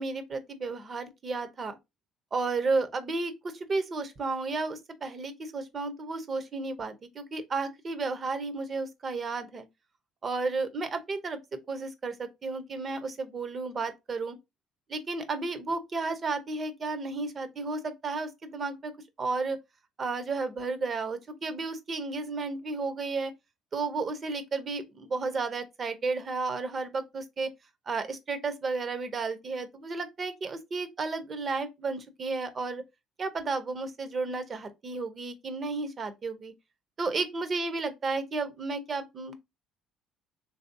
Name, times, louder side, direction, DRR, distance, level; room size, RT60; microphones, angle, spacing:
voice 1, 0.0-1.8 2.3-9.7 10.2-14.4 14.9-18.9 19.2-19.6 20.0-23.3 23.7-27.5 27.9-32.8 33.2-36.5 37.0-39.4, right 3 dB, 40° right, 0.7 m, -33 dB
3.1 x 2.7 x 2.6 m
supercardioid pair, 75°, 0 cm